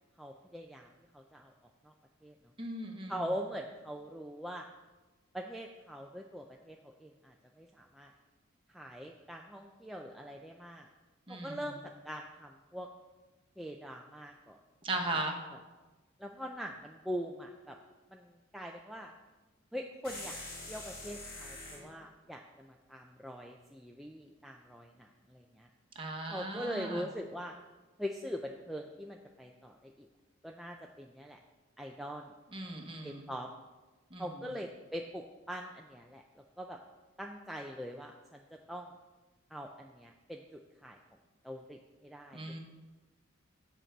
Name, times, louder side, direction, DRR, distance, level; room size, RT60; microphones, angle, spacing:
voice 1, 0.2-0.9 1.1-1.5 1.8-1.9 2.2-2.4 3.1-4.7 5.3-8.1 8.7-10.9 11.3-11.8 12.0-12.9 13.6-14.6 15.1-15.2 16.2-17.8 18.1-19.1 19.7-20.4 20.7-25.7 26.3-27.6 28.0-30.1 30.4-31.4 31.8-32.3 33.0-33.5 34.2-36.8 37.2-38.9 39.5-41.0 41.4-42.4, equal, ahead, 1 dB, 0.3 m, -42 dB
voice 2, 2.6-3.1 11.3-11.6 14.8-15.3 25.9-27.0 32.5-33.3 34.1-34.3 42.3-42.6, right 2 dB, 25° right, 2 dB, 1.0 m, -37 dB
sound 1, 20.0-21.9, left 2 dB, 45° left, 2.1 m, -44 dB
8.8 x 4.5 x 6.6 m, 1.2 s
head